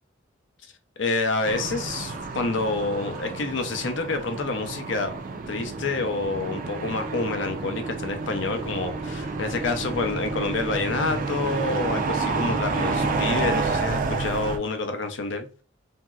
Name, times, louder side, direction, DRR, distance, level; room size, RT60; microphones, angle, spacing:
voice 1, 1.0-5.1 5.5-15.5, left 3 dB, 70° left, 0.5 m, -28 dB
sound 1, 1.4-14.6, right 3 dB, 45° right, 0.4 m, -29 dB
3.0 x 2.6 x 2.3 m
head